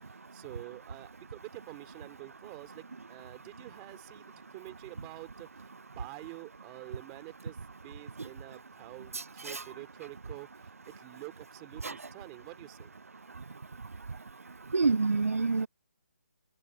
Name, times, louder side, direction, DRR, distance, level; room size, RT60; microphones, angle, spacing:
voice 1, 0.3-12.9, right 40 dB or more, 15° right, 3.5 m, -48 dB
voice 2, 9.1-9.6 11.8-12.0 14.7-15.7, right 4 dB, 60° right, 1.1 m, -28 dB
figure-of-eight pair, 145°, 9 cm